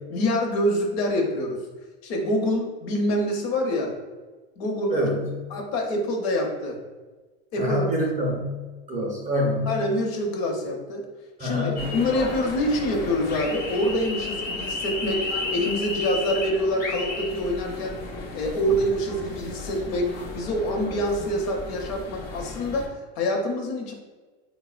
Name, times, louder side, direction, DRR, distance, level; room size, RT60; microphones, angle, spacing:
voice 1, 0.1-1.6 2.0-4.0 4.6-5.0 5.5-6.8 7.5-7.8 9.7-11.0 11.4-18.0 18.3-23.9, left 1 dB, 60° left, 2 dB, 0.8 m, -26 dB
voice 2, 4.9-5.2 7.6-8.6 8.9-9.7 11.4-11.9, left 1 dB, 20° right, -2 dB, 0.6 m, -26 dB
sound 1, 11.8-22.9, left 2 dB, 30° left, 0.4 m, -34 dB
3.7 x 2.0 x 2.4 m, 1.2 s
supercardioid pair, 140°, 34 cm